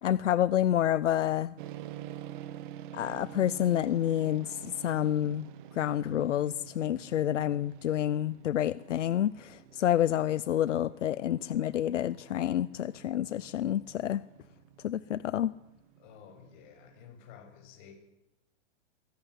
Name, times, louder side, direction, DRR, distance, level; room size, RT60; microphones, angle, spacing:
voice 1, 0.0-1.6 2.9-5.5 5.7-14.2 14.8-15.5, left 11 dB, 85° left, 17 dB, 0.8 m, -28 dB
sound 1, 1.6-17.1, right 12 dB, 45° right, 1.4 m, -48 dB
voice 2, 16.0-17.9, left 8 dB, 40° left, 3 dB, 7.4 m, -52 dB
23.0 x 17.5 x 9.8 m, 0.90 s
hypercardioid pair, 150°, 35 cm